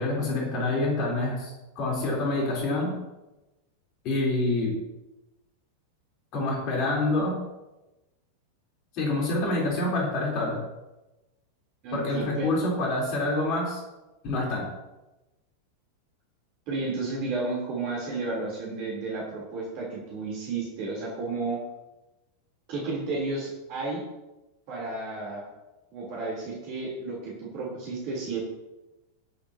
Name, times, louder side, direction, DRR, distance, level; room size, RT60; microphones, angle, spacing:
voice 1, 0.0-2.9 4.0-4.7 6.3-7.3 8.9-10.6 11.9-13.8 14.2-14.7, left 2 dB, 40° left, -2 dB, 3.9 m, -27 dB
voice 2, 11.8-12.5 16.7-21.6 22.7-24.0 24.7-25.5 25.9-28.4, right 3 dB, 45° right, -4 dB, 3.7 m, -32 dB
21.5 x 8.8 x 3.0 m, 1.0 s
figure-of-eight pair, 90°, 0 cm